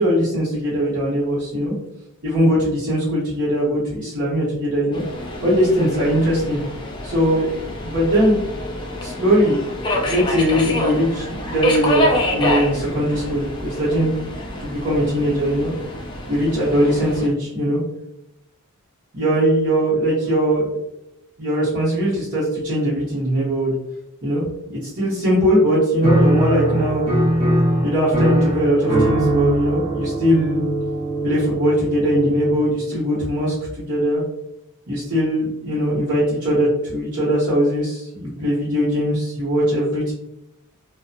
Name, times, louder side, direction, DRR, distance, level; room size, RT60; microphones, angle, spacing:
voice 1, 0.0-1.7 2.2-5.0 5.4-6.6 7.0-7.5 7.8-8.4 9.0-9.6 9.9-14.1 14.6-15.7 16.3-17.8 19.1-20.7 21.4-23.7 24.2-27.0 27.8-30.6 31.2-34.2 34.9-40.1, equal, 50° right, -11 dB, 1.0 m, -20 dB
Subway metro underground, 4.9-17.3, left 1 dB, 20° left, 0.4 m, -27 dB
Piano, 26.0-32.8, right 1 dB, 25° right, 0.7 m, -21 dB
2.7 x 2.2 x 2.4 m, 0.84 s
head